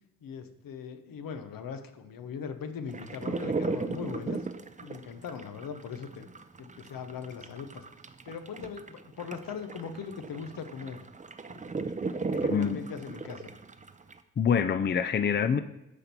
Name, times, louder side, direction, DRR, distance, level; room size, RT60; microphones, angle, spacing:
voice 1, 0.2-4.5 4.8-6.3 6.6-7.8 8.3-11.0 11.5-13.5, left 6 dB, 80° left, 9 dB, 1.0 m, -40 dB
sound 1, 2.9-14.2, right 4 dB, 25° right, 0.6 m, -36 dB
voice 2, 12.5-12.8 14.4-15.6, left 7 dB, 35° left, 12 dB, 0.5 m, -25 dB
9.8 x 4.4 x 6.9 m, 0.89 s
cardioid pair, 100°, 33 cm